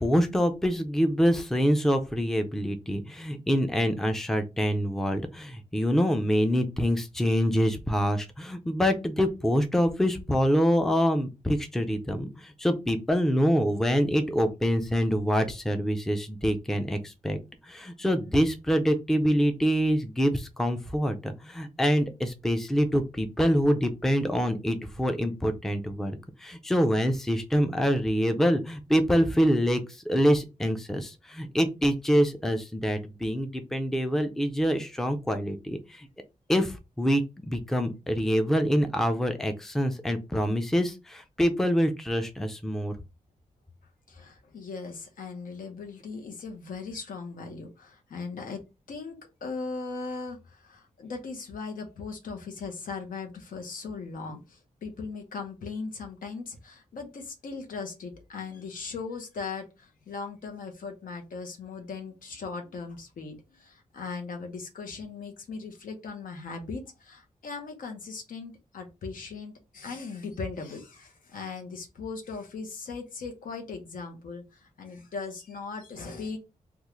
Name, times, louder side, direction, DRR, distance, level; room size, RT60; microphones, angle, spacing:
voice 1, 0.0-17.4 17.6-36.1 36.5-42.9, equal, 5° left, 7 dB, 0.3 m, -25 dB
voice 2, 44.1-48.6 48.9-76.4, left 4 dB, 90° left, 4 dB, 0.9 m, -38 dB
3.5 x 2.4 x 3.0 m, 0.27 s
wide cardioid pair, 180°, 14 cm